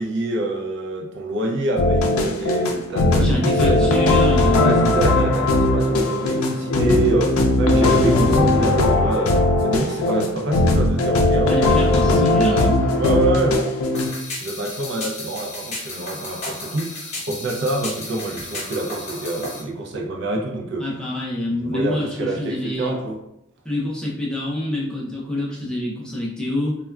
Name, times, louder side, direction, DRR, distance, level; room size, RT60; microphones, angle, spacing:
voice 1, 0.0-4.1 4.5-12.4 13.0-13.6 14.4-20.8 21.6-23.2, right 2 dB, 60° right, 0 dB, 0.4 m, -26 dB
sound 1, 1.8-14.1, left 2 dB, 90° left, 0.4 m, -18 dB
voice 2, 3.2-5.0 11.5-12.8 20.8-23.0 23.6-26.8, left 1 dB, 5° left, -6 dB, 0.5 m, -26 dB
sound 2, 13.9-19.6, left 2 dB, 35° left, 0.8 m, -33 dB
3.4 x 2.2 x 2.2 m, 0.84 s
head